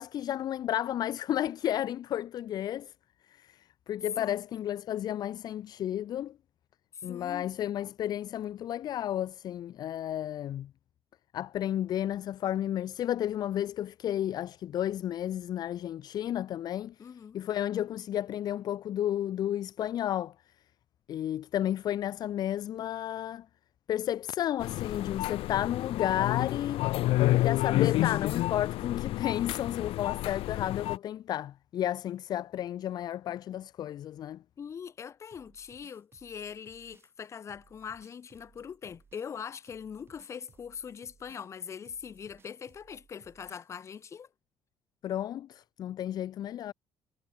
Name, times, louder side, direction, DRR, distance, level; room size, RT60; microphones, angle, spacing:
voice 1, 0.0-2.9 3.3-6.3 7.0-10.7 11.3-17.0 17.3-20.3 21.1-23.5 23.9-26.8 27.3-34.4 45.0-46.7, left 11 dB, 45° left, 0.6 m, -32 dB
voice 2, 6.9-7.5 17.0-17.4 34.6-44.3, left 7 dB, 30° left, 2.1 m, -42 dB
sound 1, 24.6-31.0, left 16 dB, 85° left, 0.8 m, -29 dB
sound 2, 35.3-44.0, right 5 dB, 25° right, 5.6 m, -63 dB
cardioid pair, 180°, 9 cm